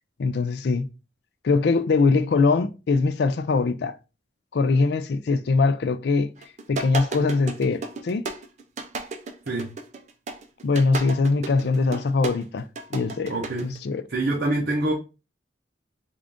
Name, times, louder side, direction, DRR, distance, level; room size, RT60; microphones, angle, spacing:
voice 1, 0.2-0.9 1.4-4.0 4.5-6.3 6.7-8.2 10.6-12.6 12.9-13.3 13.6-14.0, left 4 dB, 65° left, 0.4 m, -22 dB
sound 1, 6.4-13.8, right 3 dB, 40° right, 0.4 m, -33 dB
voice 2, 13.3-13.8 14.1-14.9, right 2 dB, 70° right, 0.8 m, -25 dB
3.6 x 2.5 x 3.4 m
head